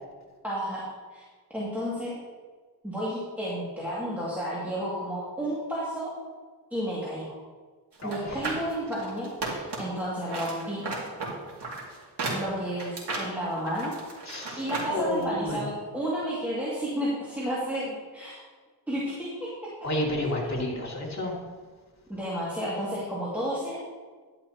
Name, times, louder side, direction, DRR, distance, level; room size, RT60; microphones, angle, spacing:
voice 1, 0.4-1.2 1.5-2.1 2.8-6.1 6.7-7.3 8.0-10.8 12.3-14.0 14.6-18.4 18.9-19.7 22.1-23.8, equal, 5° right, -8 dB, 2.3 m, -32 dB
voice 2, 8.0-8.4 14.3-14.6 14.9-15.6 19.8-21.3, left 1 dB, 40° left, -3 dB, 2.6 m, -30 dB
sound 1, 8.0-10.0 10.3-14.9 15.2-15.3, right 3 dB, 80° right, 2.4 m, -34 dB
11.0 x 11.0 x 2.9 m, 1.5 s
wide cardioid pair, 95°, 40 cm